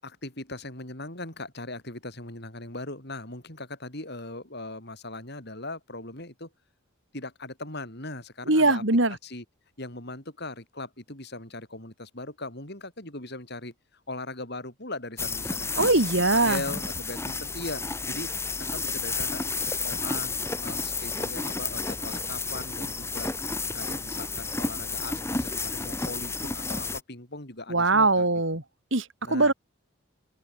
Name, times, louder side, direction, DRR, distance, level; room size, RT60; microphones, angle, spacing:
voice 1, 0.0-6.5 7.1-8.8 9.1-9.4 9.8-16.0 16.3-18.3 18.6-20.3 20.6-23.3 23.7-28.4 29.2-29.5, left 2 dB, 50° left, 6.0 m, -39 dB
voice 2, 8.5-9.1 15.8-16.6 27.7-28.6 28.9-29.5, right 2 dB, 60° right, 3.0 m, -22 dB
sound 1, 15.2-27.0, left 3 dB, 10° left, 2.2 m, -31 dB
open air
head